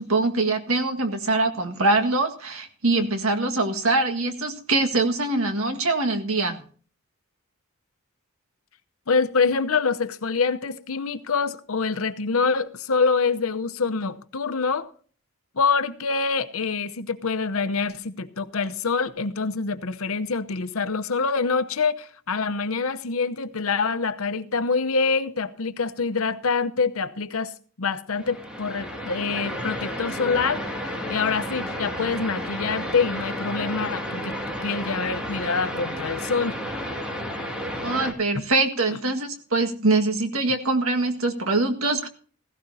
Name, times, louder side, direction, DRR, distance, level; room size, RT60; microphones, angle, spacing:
voice 1, 0.0-6.6 37.8-42.1, right 2 dB, 80° right, 1.8 m, -23 dB
voice 2, 9.1-14.9 15.6-27.5 27.8-34.4 34.6-36.6, left 4 dB, 85° left, 0.9 m, -25 dB
sound 1, 28.1-38.1, equal, 5° right, 2.2 m, -32 dB
16.0 x 16.0 x 2.8 m
head